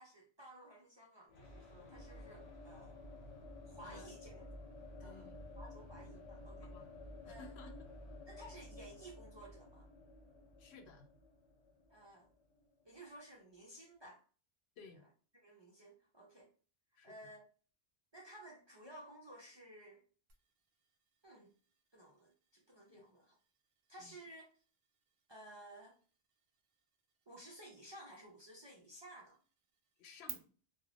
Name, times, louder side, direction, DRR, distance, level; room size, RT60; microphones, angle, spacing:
voice 1, 0.0-3.0 3.7-4.5 5.0-5.3 5.6-6.7 7.2-7.5 8.3-9.9 11.9-12.3 12.8-14.2 15.0-15.1 15.3-16.5 17.0-17.5 18.1-20.0 21.2-21.5 21.9-23.4 23.9-24.5 25.3-26.0 27.3-29.4, right 1 dB, 40° right, -2 dB, 0.4 m, -55 dB
sound 1, 1.3-13.1, left 1 dB, 45° left, 0.7 m, -53 dB
voice 2, 5.0-5.4 6.1-6.3 6.6-6.9 7.2-7.9 10.6-11.1 14.8-15.0 17.0-17.1 22.9-23.1 24.0-24.1 30.0-30.4, left 4 dB, 90° left, 6 dB, 0.9 m, -56 dB
sound 2, 20.3-30.3, right 9 dB, 70° right, 0.8 m, -59 dB
2.4 x 2.2 x 3.2 m, 0.40 s
omnidirectional pair, 1.1 m